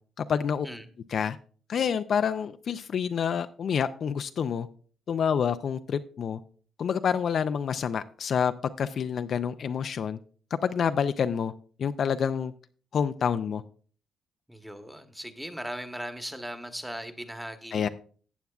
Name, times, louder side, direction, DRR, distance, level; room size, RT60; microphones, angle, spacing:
voice 1, 0.2-0.7 1.1-1.4 1.7-4.7 5.1-6.4 6.8-8.5 8.8-10.2 10.6-11.5 11.8-12.5 12.9-13.6 17.7-17.9, left 7 dB, 55° left, 10 dB, 0.4 m, -27 dB
voice 2, 14.5-17.9, equal, 5° right, 8 dB, 1.1 m, -38 dB
14.5 x 8.0 x 2.4 m, 0.43 s
cardioid pair, 90°, 0 cm